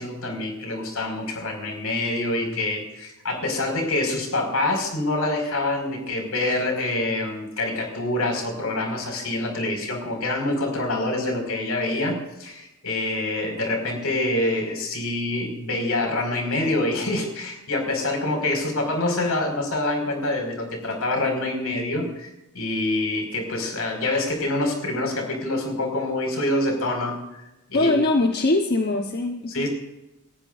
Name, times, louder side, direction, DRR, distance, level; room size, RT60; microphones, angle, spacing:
voice 1, 0.0-27.4 27.7-27.9 29.5-29.7, left 2 dB, 80° left, 2 dB, 5.4 m, -26 dB
voice 2, 27.7-29.7, left 2 dB, 45° left, 2 dB, 1.1 m, -22 dB
29.5 x 14.5 x 2.6 m, 0.95 s
head